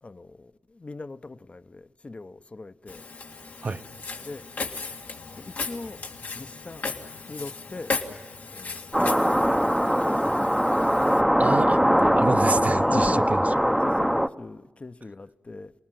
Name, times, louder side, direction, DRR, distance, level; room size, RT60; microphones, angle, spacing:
voice 1, 0.0-3.1 4.2-4.4 5.4-6.0 6.3-6.8 7.3-7.9 8.5-9.0 10.0-10.6 12.8-15.7, left 3 dB, 40° left, 0.8 m, -39 dB
Walk footsteps, 2.9-11.2, left 4 dB, 85° left, 2.2 m, -36 dB
sound 1, 8.9-14.3, equal, 5° right, 0.7 m, -21 dB
voice 2, 11.4-13.4, right 3 dB, 55° right, 0.8 m, -28 dB
28.0 x 20.0 x 7.6 m
cardioid pair, 55°, 3 cm